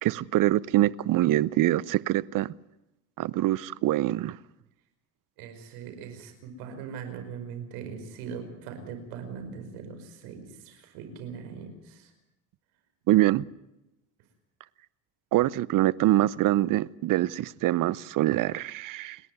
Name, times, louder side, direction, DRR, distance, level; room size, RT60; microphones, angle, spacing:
voice 1, 0.0-2.5 3.2-4.4 13.1-13.5 15.3-19.2, right 15 dB, 55° right, 0.8 m, -24 dB
voice 2, 5.4-12.1, right 6 dB, 90° right, 5.2 m, -40 dB
29.5 x 11.0 x 9.4 m
cardioid pair, 115°, 39 cm